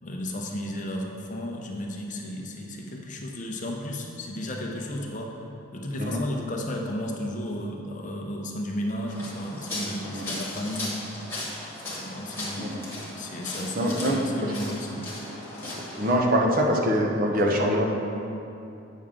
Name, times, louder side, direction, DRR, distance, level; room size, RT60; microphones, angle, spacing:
voice 1, 0.0-5.4 5.7-11.0 11.9-12.8 13.2-15.1, left 1 dB, 35° left, 0 dB, 0.7 m, -33 dB
sound 1, 9.1-16.1, left 2 dB, 10° left, 1.4 m, -37 dB
voice 2, 13.8-14.2 16.0-17.9, equal, 40° right, 0 dB, 0.7 m, -23 dB
8.4 x 6.3 x 3.7 m, 2.8 s
head